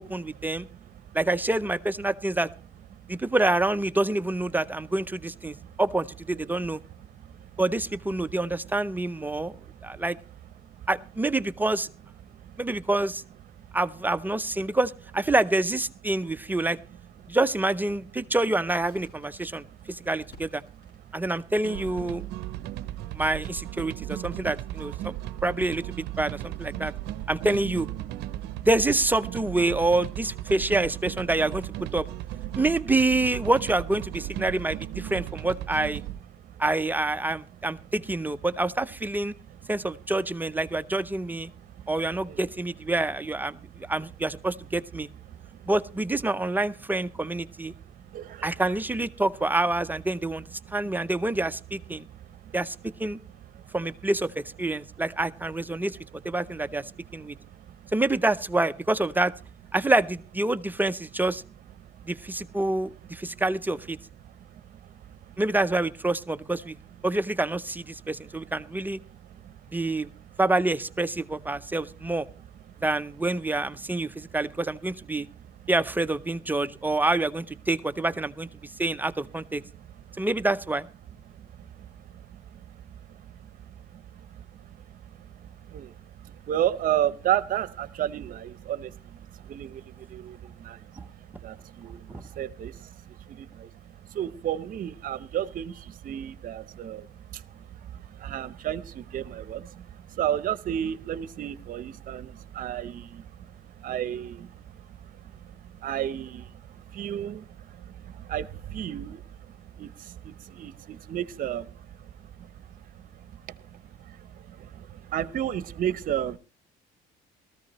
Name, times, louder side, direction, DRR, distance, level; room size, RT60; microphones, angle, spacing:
voice 1, 0.0-0.7 1.1-2.5 3.1-6.8 7.6-9.5 9.8-10.2 10.9-11.9 12.6-13.2 13.7-16.8 17.3-20.6 21.1-22.2 23.1-25.1 25.4-26.9 27.3-27.9 28.6-32.1 32.5-36.0 36.6-39.3 39.7-41.5 41.9-45.1 45.7-47.7 48.4-52.1 52.5-53.2 53.7-56.0 56.2-57.4 57.9-59.3 59.7-61.4 62.1-64.0 65.4-66.7 67.0-69.0 69.7-70.1 70.4-72.3 72.8-75.3 75.7-78.5 78.8-79.6 80.2-80.9 92.1-92.2, right 2 dB, 10° right, 12 dB, 0.6 m, -27 dB
voice 2, 0.5-1.2 2.9-3.2 5.5-5.8 6.4-6.5 7.0-7.6 9.3-10.0 10.6-10.9 12.3-12.6 13.6-13.8 17.2-17.4 19.5-20.1 20.9-21.2 22.2-23.2 24.2-24.5 25.0-25.4 26.7-27.2 28.3-28.7 32.5-32.6 36.3-36.6 41.5-42.0 42.3-42.4 43.5-43.8 45.3-45.7 47.7-48.5 50.6-50.9 52.0-52.6 53.5-53.8 55.7-55.8 56.6-57.9 61.8-62.5 63.3-63.4 64.2-65.4 68.0-68.1 69.1-70.4 71.5-71.6 72.7-72.9 73.9-74.4 75.2-75.6 78.6-78.8 79.7-80.3 81.3-116.4, right 11 dB, 55° right, 16 dB, 0.8 m, -35 dB
Crackle, 18.7-25.5, left 1 dB, 75° left, 6.0 m, -57 dB
sound 1, 21.6-36.2, right 13 dB, 85° right, 0.6 m, -36 dB
18.5 x 14.5 x 3.1 m, 0.31 s
cardioid pair, 110°, 17 cm